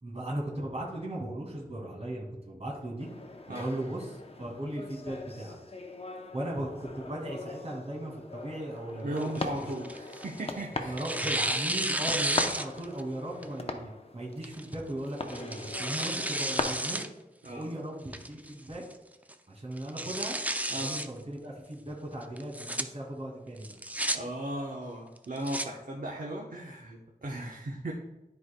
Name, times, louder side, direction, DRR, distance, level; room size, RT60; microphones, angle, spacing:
voice 1, 0.0-3.1 3.5-4.1 4.4-5.6 6.3-9.2 10.8-17.0 17.5-18.8 19.5-20.4 20.7-23.7, right 1 dB, 45° right, -3 dB, 2.1 m, -37 dB
sound 1, 3.0-16.6, left 3 dB, 40° left, 0.7 m, -40 dB
voice 2, 9.0-11.1 17.4-17.7 20.7-21.0 24.1-27.9, right 1 dB, 65° right, -1 dB, 0.9 m, -37 dB
Tearing, 9.2-10.5 11.0-13.0 13.4-13.5 14.4-14.7 15.3-17.1 17.4-17.5 18.1-18.5 18.9-19.0 19.3-19.4 19.8-21.1 22.4-22.8 23.6-24.2 25.2-25.7, right 1 dB, 10° right, 0.4 m, -32 dB
13.0 x 4.7 x 2.2 m, 1.0 s
wide cardioid pair, 75°, 15 cm